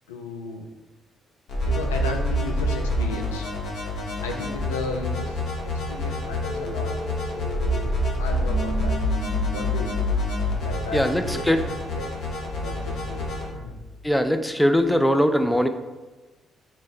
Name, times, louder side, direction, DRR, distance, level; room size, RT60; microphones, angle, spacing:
voice 1, 0.1-0.7 1.6-3.5 4.2-6.9 7.2-9.0 9.5-10.2 10.6-11.6 11.9-13.8, left 3 dB, 90° left, 3 dB, 0.3 m, -35 dB
sound 1, 1.5-13.5, left 1 dB, 65° left, 0.8 m, -27 dB
sound 2, 6.4-14.3, right 2 dB, 50° left, 1.2 m, -38 dB
voice 2, 10.9-11.6 14.0-15.7, equal, 5° left, 8 dB, 0.3 m, -21 dB
3.7 x 2.0 x 3.9 m, 1.2 s
hypercardioid pair, 45°, 0 cm